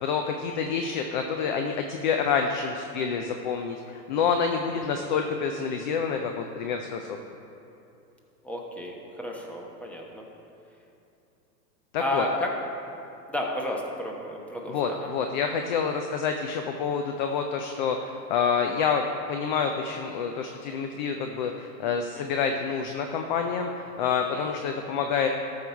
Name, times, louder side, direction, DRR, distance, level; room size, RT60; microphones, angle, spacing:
voice 1, 0.0-7.2 11.9-12.2 14.7-25.3, left 6 dB, 30° left, 5 dB, 0.4 m, -28 dB
voice 2, 4.7-5.0 8.4-10.2 12.0-12.5 13.3-15.1 22.2-22.3 24.3-24.5, left 1 dB, 5° left, -1 dB, 1.1 m, -32 dB
13.5 x 5.6 x 4.5 m, 2.8 s
hypercardioid pair, 120°, 50 cm